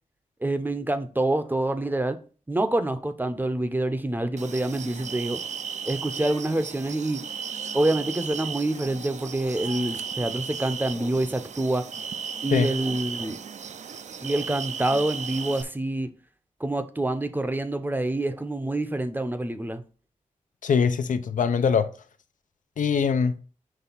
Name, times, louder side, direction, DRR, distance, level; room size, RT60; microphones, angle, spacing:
voice 1, 0.4-2.2 2.5-5.4 5.9-7.2 7.7-11.8 12.4-13.4 14.2-16.1 16.6-19.8, right 1 dB, 15° right, 0.6 m, -26 dB
sound 1, 4.4-15.6, right 6 dB, 65° right, 0.4 m, -35 dB
voice 2, 20.6-21.9 22.8-23.4, left 6 dB, 85° left, 0.5 m, -22 dB
6.0 x 3.3 x 5.5 m
wide cardioid pair, 140°, 13 cm